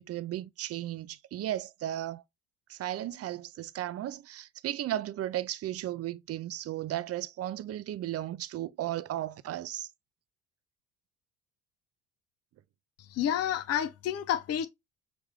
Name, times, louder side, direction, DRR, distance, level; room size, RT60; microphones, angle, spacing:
voice 1, 0.0-2.2 2.7-9.9, right 13 dB, 40° right, 0.5 m, -35 dB
voice 2, 13.0-14.7, left 10 dB, 40° left, 0.6 m, -30 dB
5.7 x 2.6 x 3.2 m
hypercardioid pair, 65°, 39 cm